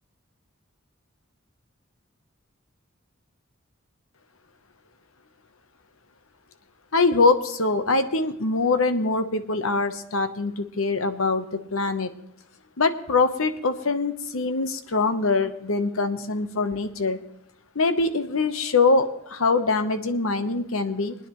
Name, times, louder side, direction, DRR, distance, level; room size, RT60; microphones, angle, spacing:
voice 1, 6.9-12.1 12.8-17.2 17.7-21.2, left 3 dB, 75° left, 9 dB, 1.0 m, -23 dB
22.5 x 9.8 x 3.1 m, 0.80 s
head